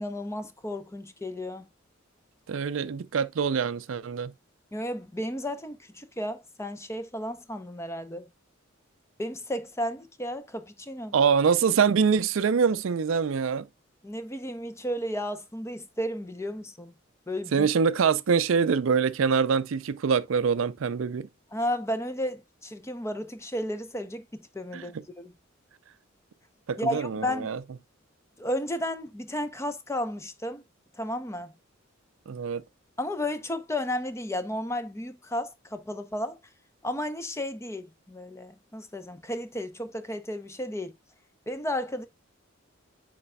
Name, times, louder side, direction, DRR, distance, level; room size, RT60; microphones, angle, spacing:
voice 1, 0.0-1.7 4.7-8.3 9.2-11.1 14.0-16.9 17.3-17.7 21.5-25.3 26.8-27.5 28.4-30.6 31.0-31.5 33.0-36.4 36.8-40.9 41.5-42.1, left 1 dB, 15° left, 0.6 m, -33 dB
voice 2, 2.5-4.3 11.1-13.7 17.5-21.3 24.7-24.9 26.7-27.6 32.3-32.6, right 6 dB, 75° right, 0.4 m, -24 dB
9.8 x 4.4 x 2.2 m
head